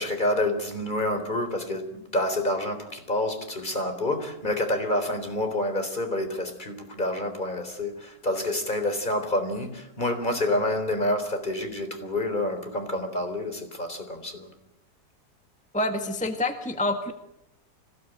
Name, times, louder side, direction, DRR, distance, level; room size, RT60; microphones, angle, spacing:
voice 1, 0.0-14.5, left 1 dB, 25° left, 7 dB, 3.9 m, -28 dB
voice 2, 15.7-17.1, left 1 dB, 5° left, 6 dB, 1.4 m, -27 dB
25.5 x 17.5 x 9.3 m, 0.86 s
omnidirectional pair, 1.9 m